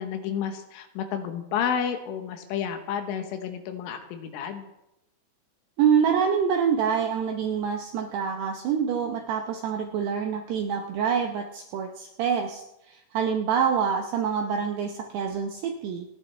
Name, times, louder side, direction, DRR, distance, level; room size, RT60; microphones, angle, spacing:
voice 1, 0.0-4.7, left 8 dB, 75° left, 7 dB, 3.5 m, -31 dB
voice 2, 5.8-12.6 12.9-16.1, right 7 dB, 80° right, 3 dB, 2.4 m, -26 dB
28.5 x 10.0 x 3.3 m, 0.89 s
omnidirectional pair, 5.8 m